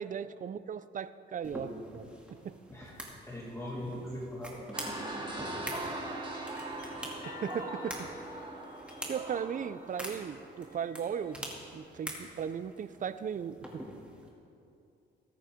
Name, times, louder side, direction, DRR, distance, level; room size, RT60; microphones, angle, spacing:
voice 1, 0.0-2.1 2.4-2.6 7.3-8.1 9.0-11.4 11.7-13.8, right 7 dB, 40° right, 14 dB, 0.5 m, -37 dB
sound 1, 1.4-14.3, equal, 5° right, 2.5 m, -46 dB
voice 2, 2.7-4.8, left 1 dB, 15° left, -5 dB, 2.4 m, -41 dB
sound 2, 4.7-11.8, right 1 dB, 25° right, 2.4 m, -41 dB
sound 3, 6.1-10.0 10.5-11.6, equal, 70° left, 2.5 m, -50 dB
20.5 x 8.7 x 3.7 m, 2.6 s
cardioid pair, 90°, 20 cm